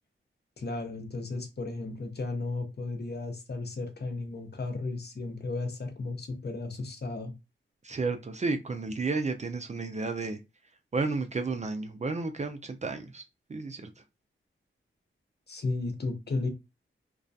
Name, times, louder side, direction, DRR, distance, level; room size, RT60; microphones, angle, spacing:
voice 1, 0.6-7.3 15.5-16.5, left 3 dB, 50° left, 0.7 m, -34 dB
voice 2, 7.8-10.4 10.9-13.2 13.5-13.9, right 3 dB, 35° right, 0.4 m, -32 dB
2.3 x 2.2 x 2.6 m
cardioid pair, 60°, 21 cm